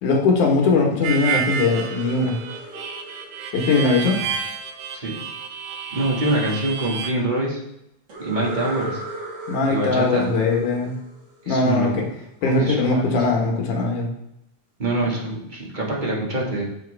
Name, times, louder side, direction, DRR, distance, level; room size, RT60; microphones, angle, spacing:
voice 1, 0.0-2.4 3.5-4.2 9.5-10.9 11.5-12.0 12.4-14.1, left 3 dB, 70° left, 1 dB, 2.8 m, -20 dB
Harmonica, 1.0-7.1, right 7 dB, 75° right, 2.2 m, -30 dB
sound 1, 1.5-4.4 8.1-11.8, right 1 dB, 45° right, 4.1 m, -37 dB
voice 2, 5.9-7.6 8.2-9.0 9.7-10.3 11.4-12.0 12.4-13.2 14.8-16.6, right 1 dB, 20° right, -5 dB, 1.5 m, -25 dB
7.7 x 7.5 x 3.5 m, 0.80 s
omnidirectional pair, 3.7 m